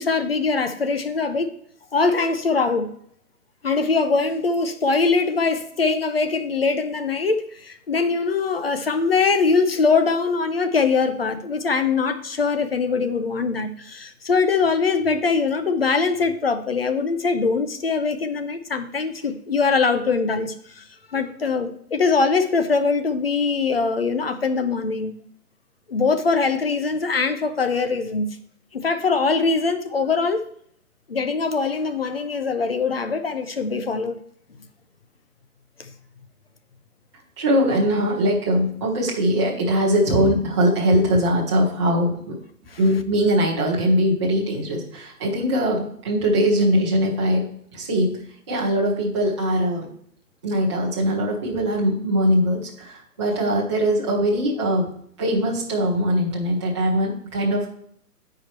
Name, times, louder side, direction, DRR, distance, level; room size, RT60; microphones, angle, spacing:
voice 1, 0.0-1.5 1.9-2.9 3.6-20.8 21.1-25.2 25.9-28.3 28.7-30.4 31.1-34.2 35.8-35.9 42.7-42.8, left 4 dB, 40° left, 9 dB, 0.7 m, -22 dB
voice 2, 37.4-42.4 42.8-49.9 50.4-54.9 55.2-57.7, equal, 20° right, -5 dB, 1.1 m, -21 dB
9.3 x 4.9 x 4.4 m, 0.66 s
hypercardioid pair, 175°, 46 cm